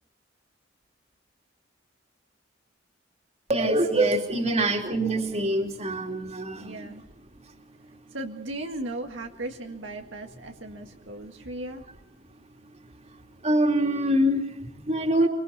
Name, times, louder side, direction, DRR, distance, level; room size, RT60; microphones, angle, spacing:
voice 1, 3.5-6.9 13.4-15.3, right 1 dB, 35° right, 3 dB, 3.1 m, -24 dB
voice 2, 6.6-7.0 8.1-11.9, right 1 dB, 80° right, 3 dB, 1.9 m, -37 dB
25.0 x 24.5 x 4.3 m, 0.75 s
head